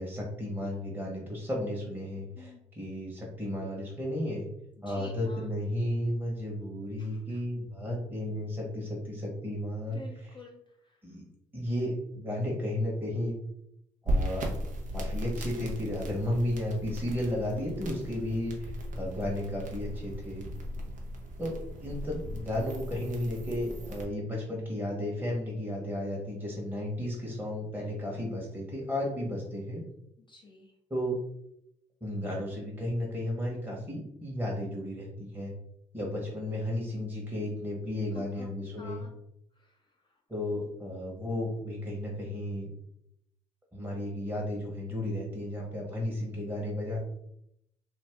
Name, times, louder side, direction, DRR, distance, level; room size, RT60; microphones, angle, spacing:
voice 1, 0.0-4.5 4.8-10.3 11.0-11.2 11.5-13.4 14.0-14.5 14.9-20.5 21.4-21.5 21.8-29.8 30.9-31.1 32.0-35.5 35.9-39.0 40.3-42.7 43.7-47.0, left 1 dB, 15° right, -3 dB, 1.2 m, -33 dB
voice 2, 4.9-5.5 7.0-7.4 9.9-11.0 30.3-30.7 38.1-38.5 38.8-39.1 39.6-39.8 40.1-40.2, left 3 dB, 35° left, -1 dB, 0.6 m, -50 dB
sound 1, 14.1-24.0, equal, 55° right, 0.8 m, -36 dB
2.6 x 2.4 x 3.4 m, 0.75 s
hypercardioid pair, 50°, 15 cm